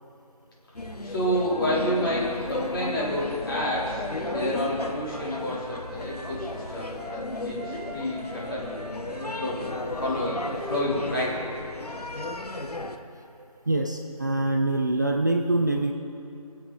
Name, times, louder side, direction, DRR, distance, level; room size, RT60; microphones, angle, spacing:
sound 1, 0.7-13.0, left 1 dB, 85° left, 1.2 m, -34 dB
voice 1, 1.0-8.7 9.4-11.4, equal, 35° left, -7 dB, 3.7 m, -29 dB
Wind instrument woodwind instrument, 4.1-7.2 7.6-11.7, left 2 dB, 15° left, 2.2 m, -41 dB
voice 2, 13.7-15.9, right 2 dB, 30° right, 3 dB, 0.5 m, -24 dB
23.0 x 8.1 x 4.0 m, 2.7 s
figure-of-eight pair, 160°, 19 cm